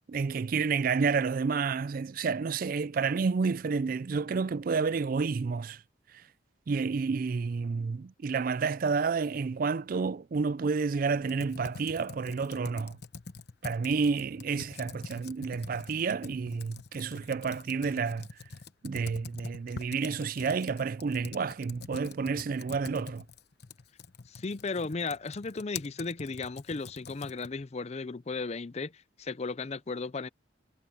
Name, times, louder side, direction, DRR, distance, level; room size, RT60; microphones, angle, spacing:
voice 1, 0.1-5.8 6.1-6.2 6.7-13.0 13.6-18.3 18.8-23.2, right 5 dB, 50° right, 0.4 m, -30 dB
Computer keyboard, 11.2-27.6, left 5 dB, 60° left, 0.9 m, -46 dB
voice 2, 24.3-30.3, left 4 dB, 35° left, 0.5 m, -35 dB
head